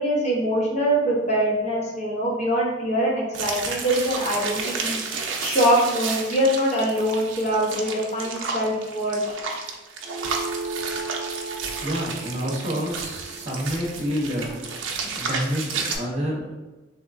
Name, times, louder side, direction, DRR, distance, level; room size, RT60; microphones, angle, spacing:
voice 1, 0.0-9.2, right 1 dB, 40° left, -4 dB, 0.9 m, -23 dB
sound 1, 3.3-16.0, right 4 dB, 85° right, 0.5 m, -32 dB
sound 2, 10.0-14.8, right 3 dB, 5° right, 0.9 m, -36 dB
voice 2, 11.8-16.5, equal, 35° right, -3 dB, 0.8 m, -29 dB
3.6 x 2.8 x 2.5 m, 1.1 s
head